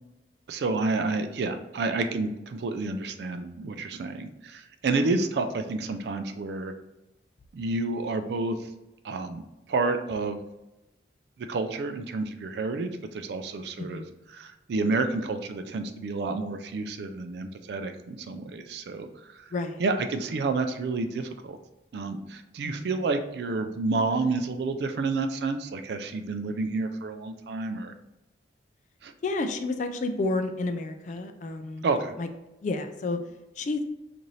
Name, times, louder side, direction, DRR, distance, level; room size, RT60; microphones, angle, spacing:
voice 1, 0.5-6.7 7.5-8.6 9.0-9.4 9.7-10.4 11.5-14.0 14.3-19.1 19.3-19.4 19.8-21.6 21.9-27.9 29.0-29.1 31.8-32.2, right 3 dB, 65° right, 8 dB, 0.3 m, -29 dB
voice 2, 29.2-31.8 32.2-32.3 32.6-33.2 33.6-33.8, left 2 dB, 45° left, 8 dB, 0.3 m, -30 dB
4.0 x 2.6 x 3.1 m, 0.98 s
head